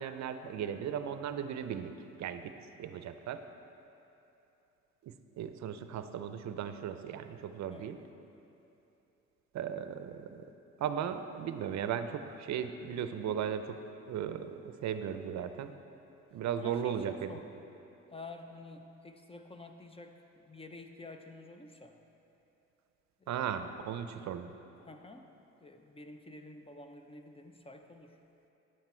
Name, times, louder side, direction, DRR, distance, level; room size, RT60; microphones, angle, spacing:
voice 1, 0.0-1.9 2.2-2.5 2.8-3.4 5.0-8.0 9.5-10.4 10.8-13.8 14.1-15.7 16.3-17.3 23.3-24.5, right 8 dB, 65° right, 10 dB, 0.5 m, -36 dB
voice 2, 16.6-17.6 18.1-22.0 23.2-23.4 24.8-25.3 25.6-28.2, left 2 dB, 20° left, 6 dB, 0.6 m, -50 dB
9.5 x 8.0 x 4.3 m, 2.9 s
cardioid pair, 90°, 30 cm